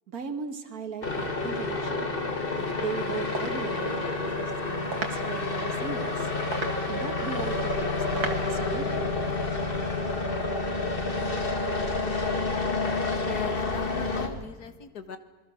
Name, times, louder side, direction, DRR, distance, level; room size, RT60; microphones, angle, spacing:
voice 1, 0.1-2.1 2.6-6.3 6.9-9.1, right 5 dB, 70° right, 8 dB, 2.2 m, -37 dB
sound 1, 1.0-14.3, left 3 dB, 35° left, 2.1 m, -29 dB
sound 2, 2.4-8.6, right 4 dB, 85° right, 2.5 m, -40 dB
sound 3, 7.4-14.4, right 1 dB, 20° right, 2.1 m, -42 dB
voice 2, 13.2-15.2, left 6 dB, 80° left, 9 dB, 2.1 m, -39 dB
27.5 x 22.0 x 6.5 m, 1.2 s
omnidirectional pair, 1.6 m